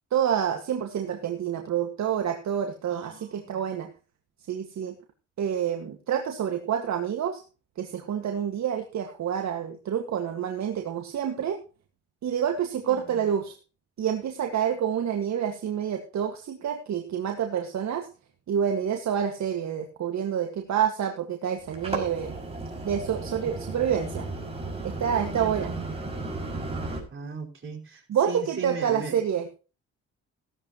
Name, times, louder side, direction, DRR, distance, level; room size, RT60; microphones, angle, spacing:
voice 1, 0.1-3.9 4.5-4.9 5.4-7.4 7.8-11.6 12.2-13.5 14.0-18.1 18.5-22.4 22.8-24.3 24.8-25.7 28.1-29.5, right 8 dB, 65° right, 4 dB, 1.9 m, -28 dB
voice 2, 2.9-3.6 12.8-13.3 25.1-25.9 27.1-29.2, right 5 dB, 40° right, -1 dB, 5.0 m, -38 dB
sound 1, 21.6-27.0, right 2 dB, 20° right, 6.0 m, -34 dB
15.5 x 12.0 x 3.1 m, 0.33 s
cardioid pair, 90°, 30 cm